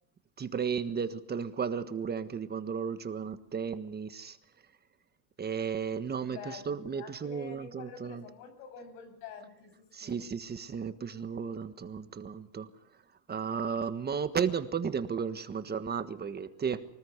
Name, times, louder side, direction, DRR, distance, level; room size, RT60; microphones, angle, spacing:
voice 1, 0.4-4.4 5.4-8.2 9.9-12.7 13.3-16.9, right 6 dB, 20° right, 1.5 m, -34 dB
voice 2, 6.3-10.2, left 5 dB, 85° left, 8.0 m, -47 dB
24.5 x 20.0 x 8.1 m
cardioid pair, 140°, 44 cm